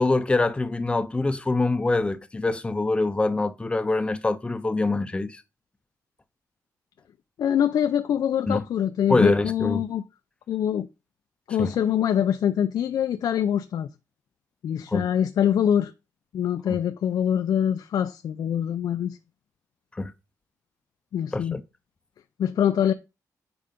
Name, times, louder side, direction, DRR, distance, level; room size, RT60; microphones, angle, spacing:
voice 1, 0.0-5.4 8.5-8.6 9.1-9.9 11.6-11.7 14.9-15.1 16.7-16.8 19.9-20.1 21.3-21.6, left 2 dB, 15° left, 0.6 m, -24 dB
voice 2, 7.4-10.0 10.5-10.9 11.5-13.9 14.6-15.9 16.3-19.2 21.1-21.6 22.4-22.9, left 9 dB, 85° left, 0.5 m, -24 dB
9.0 x 4.9 x 5.2 m
wide cardioid pair, 175°, 7 cm